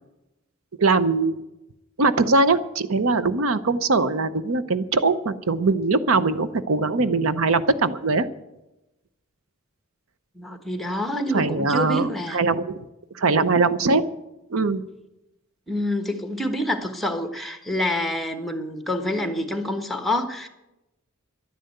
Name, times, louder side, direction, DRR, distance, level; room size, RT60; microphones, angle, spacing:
voice 1, 0.8-1.3 2.0-8.2 11.3-12.7 13.1-14.0 14.5-14.8, right 3 dB, 75° right, 13 dB, 0.7 m, -21 dB
voice 2, 10.3-12.4 15.7-20.5, left 1 dB, ahead, 6 dB, 1.3 m, -27 dB
12.0 x 10.5 x 7.9 m, 0.94 s
head